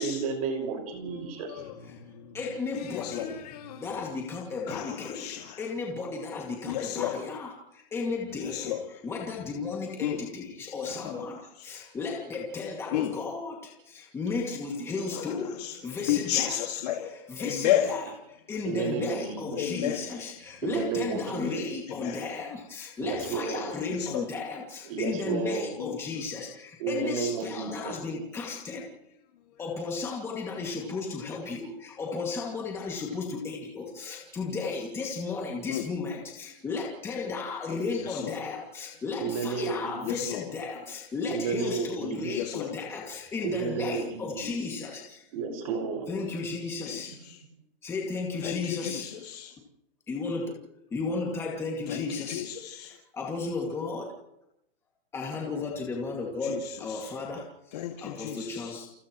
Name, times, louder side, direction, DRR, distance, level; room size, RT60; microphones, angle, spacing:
voice 1, 0.0-1.6 18.7-19.6 20.6-21.6 23.0-23.7 24.8-25.8 26.8-28.0 39.2-40.1 41.3-42.4 43.4-44.4 45.3-46.1, right 5 dB, 40° right, 3 dB, 5.5 m, -32 dB
voice 2, 1.4-1.7 2.7-4.1 4.7-5.6 6.7-7.2 8.5-8.8 10.0-10.2 10.9-11.1 12.9-13.1 15.1-15.7 16.1-18.0 19.6-20.1 22.0-22.3 24.0-24.2 25.8-26.0 35.7-35.8 38.0-38.3 40.0-40.5 42.3-42.7 44.4-44.5 46.9-47.0 48.4-49.5 51.9-52.9 56.4-56.6 57.0-57.1 57.7-58.7, left 11 dB, 45° left, 1 dB, 2.2 m, -32 dB
voice 3, 2.3-3.5 3.8-16.6 17.0-28.9 29.6-45.3 46.1-47.1 47.8-49.1 50.1-50.6 50.9-54.1 55.1-58.9, left 4 dB, 10° left, -1 dB, 2.3 m, -34 dB
29.5 x 29.0 x 3.1 m, 0.85 s
hypercardioid pair, 170°, 30 cm